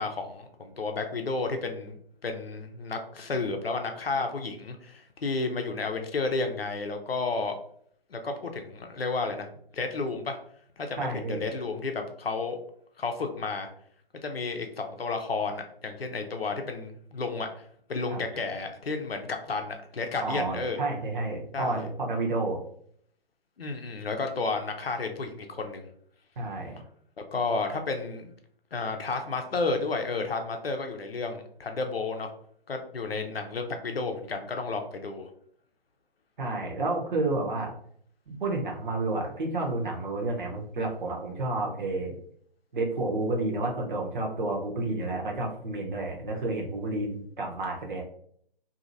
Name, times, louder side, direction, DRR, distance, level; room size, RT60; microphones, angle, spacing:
voice 1, 0.0-7.6 8.1-9.5 9.7-10.4 10.8-12.6 13.0-13.7 14.2-17.6 17.9-20.8 21.5-21.9 23.6-25.9 27.2-28.3 28.7-32.3 32.7-35.3, left 3 dB, 80° left, 5 dB, 0.6 m, -32 dB
voice 2, 11.0-11.5 18.1-18.2 18.5-18.6 20.2-22.6 26.4-26.8 36.4-37.7 38.3-42.1 42.7-48.0, right 2 dB, 55° right, 0 dB, 0.9 m, -30 dB
2.7 x 2.7 x 2.6 m, 0.63 s
figure-of-eight pair, 135°, 30 cm